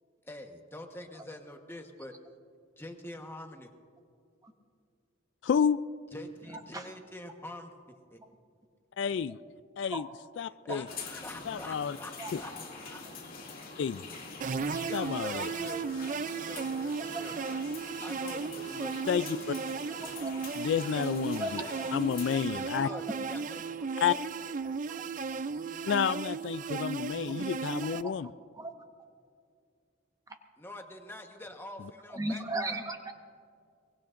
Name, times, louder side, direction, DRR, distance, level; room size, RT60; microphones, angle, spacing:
voice 1, 0.2-2.1 2.8-3.7 6.1-8.2 10.5-12.5 12.8-13.3 14.8-15.8 16.5-17.6 18.0-19.3 21.5-21.8 22.2-24.1 30.6-32.9, left 1 dB, 10° left, 4 dB, 1.1 m, -46 dB
voice 2, 5.4-5.8 9.0-9.4 9.8-10.1 10.4-10.9 11.5-12.0 12.3-12.4 13.8-14.0 14.9-15.5 19.1-19.5 20.6-21.6 21.9-22.9 24.0-24.1 25.9-28.3, left 7 dB, 65° left, 15 dB, 0.3 m, -30 dB
sound 1, 10.9-22.5, left 4 dB, 50° left, 2.2 m, -45 dB
sound 2, 14.4-28.0, right 5 dB, 40° right, 0.3 m, -35 dB
voice 3, 20.0-20.3 21.3-21.5 22.9-23.1 27.4-27.5 27.8-28.1 28.5-28.7 32.1-33.1, right 2 dB, 20° right, 5 dB, 1.0 m, -36 dB
23.5 x 20.5 x 2.5 m, 2.3 s
head